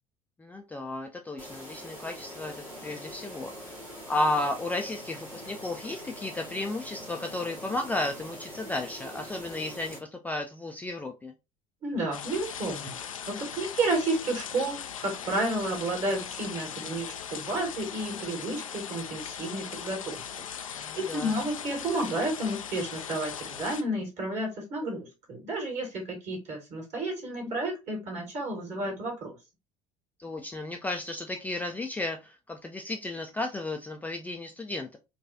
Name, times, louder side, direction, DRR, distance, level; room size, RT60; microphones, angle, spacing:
voice 1, 0.4-3.8 4.1-10.0 10.2-11.3 20.8-21.3 30.2-35.0, left 2 dB, 10° left, 3 dB, 0.4 m, -33 dB
sound 1, 1.4-10.0, equal, 85° right, 1.4 m, -43 dB
voice 2, 11.8-20.2 20.6-29.4, right 2 dB, 40° right, 2 dB, 1.8 m, -31 dB
sound 2, 12.1-23.8, left 8 dB, 80° left, 0.4 m, -39 dB
4.5 x 2.4 x 2.7 m, 0.26 s
figure-of-eight pair, 65°, 17 cm